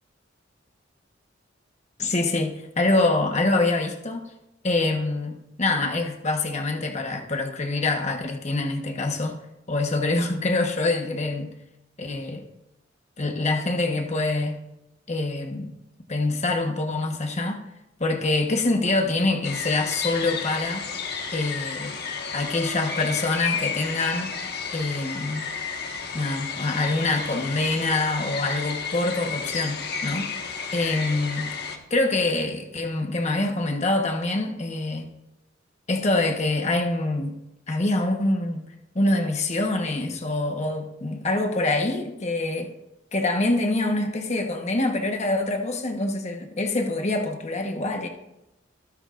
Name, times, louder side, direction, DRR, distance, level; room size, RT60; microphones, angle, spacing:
voice 1, 2.0-4.2 4.6-9.4 9.7-11.5 12.0-12.4 13.2-14.6 15.1-15.7 16.1-17.6 18.0-20.8 21.3-22.0 22.3-24.4 24.7-25.5 26.1-30.3 30.7-31.5 31.9-35.1 35.9-37.4 37.7-38.7 38.9-42.7 43.1-48.1, left 2 dB, 35° left, 3 dB, 1.2 m, -25 dB
sound 1, 19.4-31.8, left 5 dB, 55° left, 1.5 m, -32 dB
25.0 x 9.7 x 2.5 m, 0.91 s
head